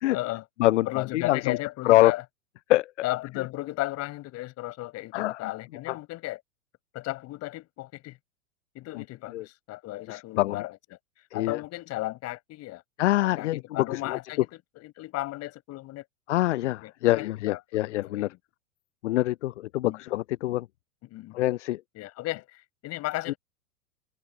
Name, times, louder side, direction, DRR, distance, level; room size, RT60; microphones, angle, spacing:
voice 1, 0.1-0.4 0.9-2.2 3.0-6.4 6.9-8.2 8.7-10.8 11.3-12.8 13.2-16.0 16.8-17.8 18.2-18.3 19.8-20.0 21.0-21.4 21.9-23.4, left 18 dB, 40° left, 6.8 m, -35 dB
voice 2, 0.6-1.6 1.8-2.1 2.7-3.1 5.1-5.5 5.9-6.0 8.9-9.0 9.3-9.4 10.1-10.6 11.3-11.6 13.0-14.2 16.3-18.3 19.0-20.7 21.3-21.8 23.3-23.4, left 16 dB, 60° left, 0.5 m, -25 dB
figure-of-eight pair, 95°, 41 cm